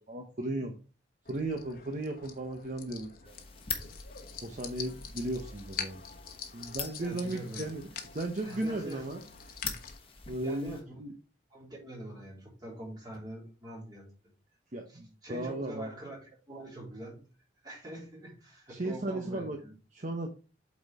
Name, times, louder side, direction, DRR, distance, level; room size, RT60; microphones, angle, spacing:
voice 1, 0.1-0.8 1.3-3.3 4.4-6.0 6.5-7.8 8.1-9.2 10.3-11.1 14.7-15.9 18.7-19.6 19.9-20.3, right 1 dB, 45° right, 4 dB, 0.9 m, -35 dB
sound 1, 1.2-10.0, left 6 dB, 50° left, 1.1 m, -45 dB
sound 2, 3.2-10.8, left 6 dB, 30° left, 1.2 m, -44 dB
voice 2, 7.0-7.7 8.4-9.1 10.4-11.0 11.5-14.3 14.9-17.2 17.6-19.7, right 1 dB, 20° right, -3 dB, 3.5 m, -44 dB
8.4 x 4.2 x 4.2 m, 0.34 s
head